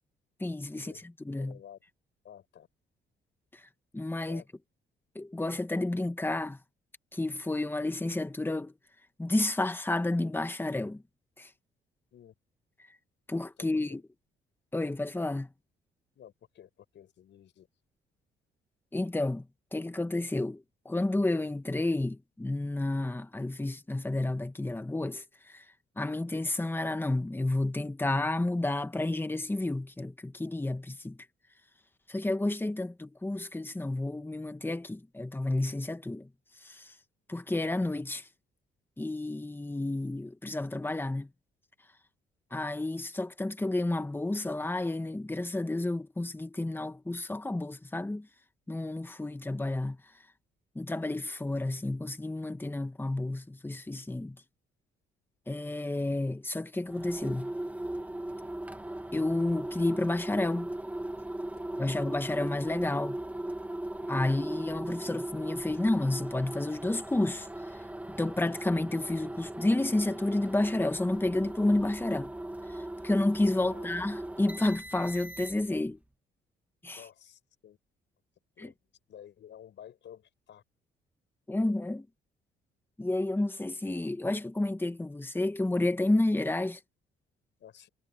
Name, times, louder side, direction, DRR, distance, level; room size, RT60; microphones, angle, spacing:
voice 1, 0.4-0.9 1.3-1.6 3.5-3.6 3.9-4.4 5.2-6.6 7.1-8.7 9.2-11.0 11.4-11.5 13.3-14.0 14.7-15.5 18.9-19.5 19.7-25.6 26.0-31.2 32.1-36.3 36.6-36.9 37.3-38.3 39.0-41.3 42.5-48.3 48.7-50.0 50.8-54.4 55.5-57.5 59.1-60.7 61.8-63.2 64.1-67.5 68.2-72.3 72.7-76.0 76.8-77.1 78.6-78.7 81.5-82.1 83.0-86.8, left 2 dB, 10° left, 1.7 m, -30 dB
voice 2, 1.4-1.8 2.2-2.7 4.3-4.5 12.1-12.3 13.6-14.0 16.1-17.7 73.6-73.9 76.9-77.8 78.6-80.6 87.6-87.9, left 10 dB, 65° left, 6.2 m, -52 dB
sound 1, 56.8-75.8, right 1 dB, 5° right, 1.8 m, -38 dB
cardioid pair, 90°, 20 cm